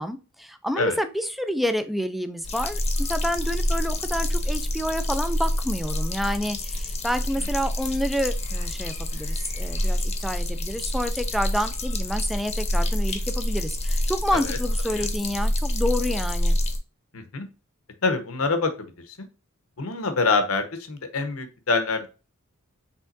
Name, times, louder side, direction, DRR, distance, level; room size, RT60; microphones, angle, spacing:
voice 1, 0.0-16.6, equal, ahead, 9 dB, 0.4 m, -29 dB
sound 1, 2.4-16.8, left 1 dB, 30° left, 0.8 m, -27 dB
voice 2, 17.1-17.5 18.0-18.7 19.8-22.1, left 3 dB, 75° left, 7 dB, 1.0 m, -25 dB
5.6 x 3.6 x 2.6 m, 0.32 s
head